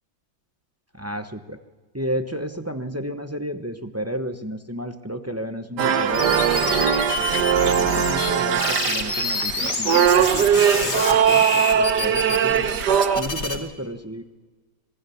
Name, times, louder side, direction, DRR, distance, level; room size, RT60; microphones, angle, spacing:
voice 1, 1.0-1.6 1.9-7.0 7.5-12.7 13.1-14.3, equal, 15° right, 7 dB, 0.7 m, -32 dB
sound 1, 5.8-13.2, right 8 dB, 80° right, 1.6 m, -20 dB
sound 2, 6.1-8.3 8.6-13.6, left 3 dB, 90° left, 3.0 m, -27 dB
26.0 x 19.0 x 7.1 m, 1.3 s
omnidirectional pair, 1.8 m